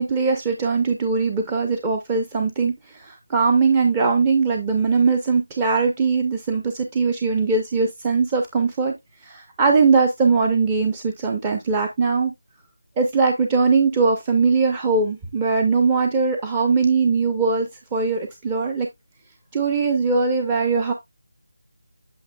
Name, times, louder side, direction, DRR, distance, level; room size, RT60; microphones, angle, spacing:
voice 1, 0.0-8.9 9.2-12.3 13.0-18.9 19.5-20.9, right 4 dB, 10° right, 0.5 m, -20 dB
8.5 x 6.1 x 2.3 m
figure-of-eight pair, 175°, 0 cm